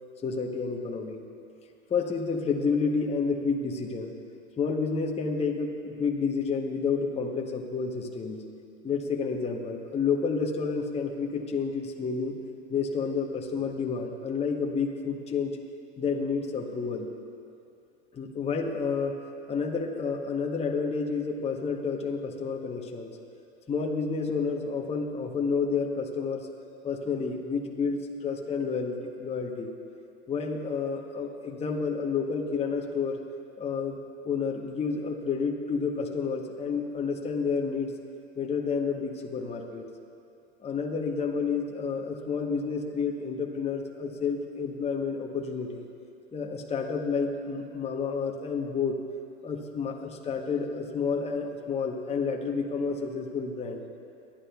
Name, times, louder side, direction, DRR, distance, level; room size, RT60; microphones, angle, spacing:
voice 1, 0.2-1.2 1.9-4.1 4.6-8.4 8.8-12.4 12.7-15.5 16.0-17.1 18.1-19.2 19.5-23.1 23.7-26.5 26.8-29.7 30.3-33.2 33.6-34.0 34.2-37.9 38.4-39.9 40.6-45.8 46.3-49.0 49.4-53.8, left 5 dB, 15° left, 1 dB, 0.9 m, -30 dB
24.5 x 9.9 x 2.3 m, 2.5 s
hypercardioid pair, 100°, 37 cm